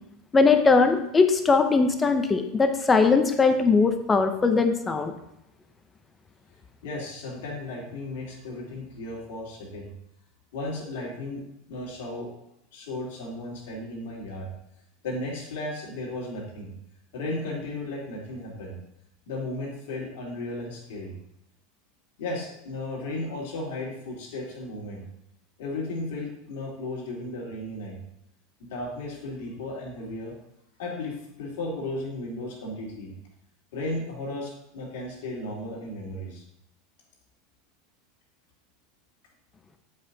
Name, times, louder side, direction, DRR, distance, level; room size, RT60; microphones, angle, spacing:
voice 1, 0.3-5.1, left 4 dB, 20° left, 7 dB, 0.9 m, -20 dB
voice 2, 6.8-9.9 10.5-11.4 11.7-12.3 12.7-14.5 15.0-16.7 17.1-18.8 19.2-21.1 22.2-25.0 25.6-28.0 28.6-30.3 30.8-33.1 33.7-36.4, left 2 dB, 75° left, -3 dB, 2.7 m, -35 dB
7.4 x 5.6 x 4.0 m, 0.81 s
hypercardioid pair, 100°, 0 cm